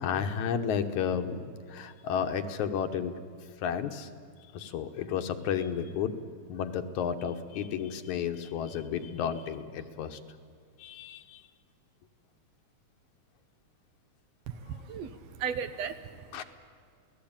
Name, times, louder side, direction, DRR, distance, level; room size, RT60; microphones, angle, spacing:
voice 1, 0.0-3.1 3.6-4.1 4.5-6.2 6.5-10.2 10.8-11.4 14.7-14.8 15.1-15.2 16.3-16.4, left 7 dB, 75° left, 8 dB, 2.5 m, -32 dB
voice 2, 14.7-16.2, right 7 dB, 70° right, 11 dB, 1.9 m, -36 dB
28.0 x 18.0 x 8.9 m, 2.3 s
omnidirectional pair, 3.5 m